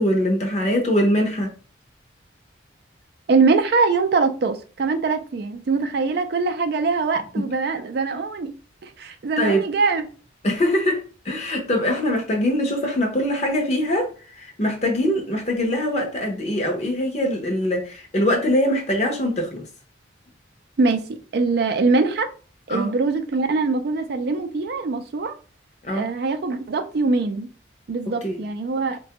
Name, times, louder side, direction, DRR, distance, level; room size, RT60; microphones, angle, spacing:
voice 1, 0.0-1.5 7.4-7.5 9.4-9.6 10.4-19.6 22.7-22.9 25.8-26.1 28.2-28.4, left 1 dB, 35° left, 0.6 m, -23 dB
voice 2, 3.3-8.5 8.8-10.1 20.8-22.3 22.7-25.4 25.9-27.5 27.9-29.0, right 4 dB, 55° right, 0.4 m, -22 dB
4.1 x 2.2 x 2.8 m
head